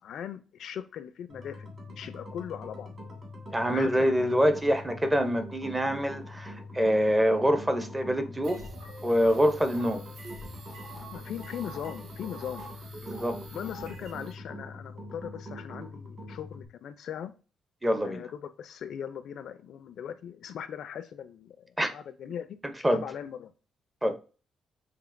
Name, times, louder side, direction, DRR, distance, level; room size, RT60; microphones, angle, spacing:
voice 1, 0.0-1.7 2.0-2.9 3.7-4.2 10.9-12.7 13.5-17.3 18.0-22.6 22.9-23.5, left 9 dB, 65° left, 0.4 m, -39 dB
sound 1, 1.3-16.7, left 2 dB, 40° right, 1.6 m, -44 dB
voice 2, 3.5-8.6 9.0-10.0 13.0-13.4 17.8-18.2 21.8-21.9 22.8-23.0 24.0-24.2, equal, 10° right, 0.5 m, -25 dB
sound 2, 8.4-14.3, right 1 dB, 75° right, 1.3 m, -45 dB
6.9 x 2.8 x 2.5 m
cardioid pair, 145°, 0 cm